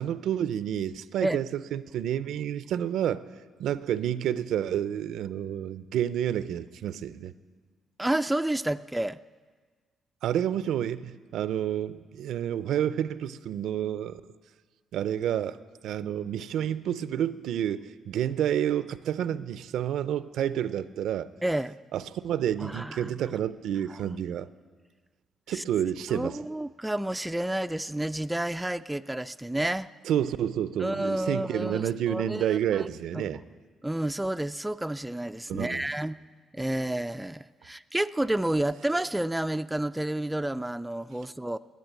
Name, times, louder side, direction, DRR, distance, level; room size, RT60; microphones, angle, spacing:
voice 1, 0.0-3.2 3.6-7.3 10.2-14.2 14.9-15.6 15.8-21.3 21.9-24.5 25.5-26.4 30.0-33.4 35.5-35.9, right 10 dB, 80° right, 0.5 m, -29 dB
voice 2, 8.0-9.2 21.4-21.8 22.6-23.1 23.9-24.2 25.5-25.6 26.1-29.9 30.8-32.9 33.1-33.4 33.8-36.2 36.5-41.6, right 1 dB, 10° right, 0.3 m, -30 dB
13.5 x 9.3 x 8.9 m
cardioid pair, 90°, 0 cm